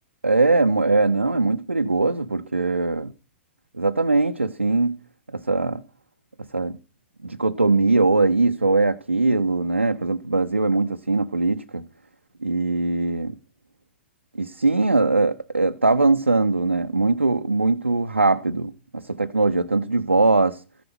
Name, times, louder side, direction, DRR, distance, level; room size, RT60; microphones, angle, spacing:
voice 1, 0.2-3.1 3.8-5.0 5.3-5.8 6.4-6.8 7.2-11.8 12.4-13.4 14.4-20.6, right 3 dB, 85° right, 0.7 m, -21 dB
14.5 x 8.0 x 6.0 m
figure-of-eight pair, 105°, 6 cm